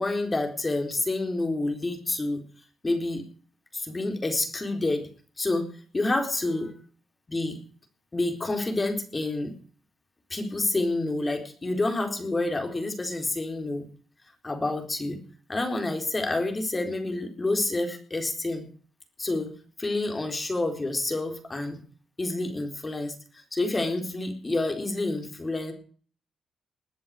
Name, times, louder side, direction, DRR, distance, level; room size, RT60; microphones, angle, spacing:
voice 1, 0.0-2.4 2.8-3.2 3.7-5.1 5.4-5.7 5.9-6.7 7.3-7.6 8.1-9.5 10.3-13.9 14.4-15.2 15.5-18.7 19.2-19.5 19.8-21.8 22.2-25.7, left 2 dB, 25° left, 5 dB, 4.1 m, -28 dB
21.0 x 7.7 x 6.6 m, 0.44 s
cardioid pair, 100°, 0 cm